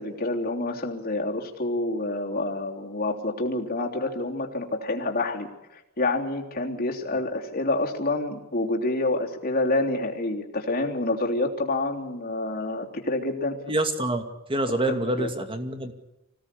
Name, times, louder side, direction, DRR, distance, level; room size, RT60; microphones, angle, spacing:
voice 1, 0.0-13.6 15.2-15.3, left 2 dB, 40° left, 0 dB, 3.4 m, -28 dB
voice 2, 13.7-14.2 14.5-15.9, right 1 dB, 25° right, 7 dB, 2.3 m, -26 dB
26.0 x 17.5 x 8.5 m, 0.91 s
head